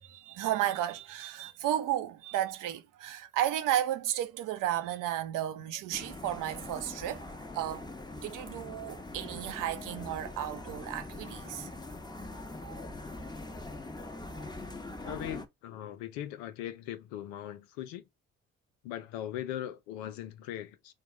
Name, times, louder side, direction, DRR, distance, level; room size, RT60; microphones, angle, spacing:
voice 1, 0.0-7.2 7.5-7.9 8.2-11.7, right 12 dB, 75° right, 0.8 m, -33 dB
sound 1, 5.9-15.5, left 2 dB, 15° left, 1.1 m, -43 dB
voice 2, 15.0-18.0 18.8-20.9, left 12 dB, 90° left, 0.7 m, -39 dB
4.5 x 2.4 x 4.7 m
hypercardioid pair, 50°, 32 cm